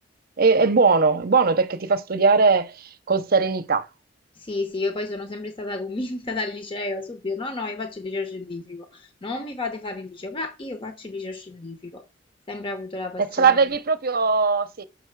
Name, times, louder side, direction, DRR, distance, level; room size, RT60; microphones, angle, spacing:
voice 1, 0.4-3.9 13.3-14.8, right 4 dB, 55° right, 0.7 m, -20 dB
voice 2, 4.3-12.0 12.5-13.6, left 3 dB, 30° left, 0.9 m, -32 dB
6.5 x 6.2 x 4.6 m
head